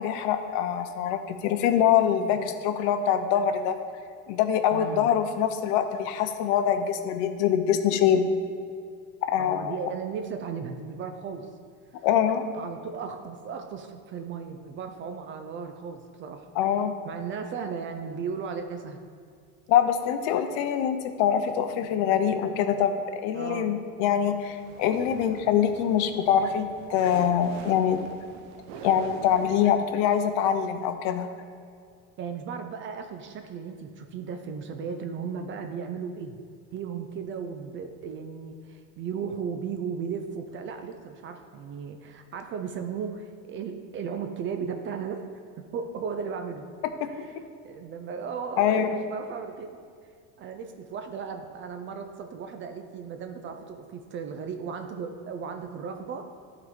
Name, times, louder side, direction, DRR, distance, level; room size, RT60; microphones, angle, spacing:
voice 1, 0.0-3.8 4.3-8.3 9.3-9.8 12.0-12.4 16.6-16.9 19.7-22.9 23.2-28.0 28.8-31.3 47.0-47.1 48.6-48.9, left 9 dB, 65° left, 8 dB, 0.7 m, -24 dB
voice 2, 4.7-5.1 9.4-11.5 11.9-12.0 12.5-16.5 17.0-19.0 23.3-23.7 32.2-36.4 36.7-45.3 45.7-46.6 47.1-49.8 50.4-56.2, right 6 dB, 30° right, 6 dB, 0.4 m, -36 dB
sound 1, 24.4-29.8, right 6 dB, 60° right, 0.7 m, -44 dB
11.5 x 3.9 x 3.6 m, 2.3 s
supercardioid pair, 135°, 41 cm